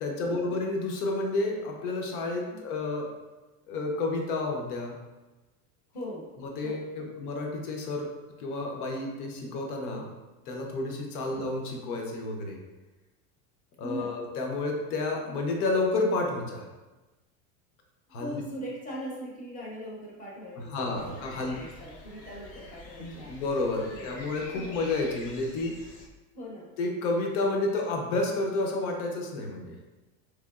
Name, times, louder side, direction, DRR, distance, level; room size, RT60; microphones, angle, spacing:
voice 1, 0.0-3.1 3.7-5.0 6.4-8.1 8.4-10.1 10.5-12.6 13.8-16.7 18.1-18.4 20.7-21.6 23.0-25.7 26.8-29.8, left 2 dB, 85° left, 1 dB, 0.8 m, -30 dB
voice 2, 5.9-6.3 6.6-6.8 11.3-11.5 13.8-14.2 18.2-23.3 23.9-25.1 26.3-26.7, equal, 20° left, -3 dB, 0.5 m, -40 dB
sound 1, 21.0-26.1, left 2 dB, 55° left, 0.7 m, -47 dB
3.7 x 3.4 x 2.3 m, 1.1 s
supercardioid pair, 160°, 43 cm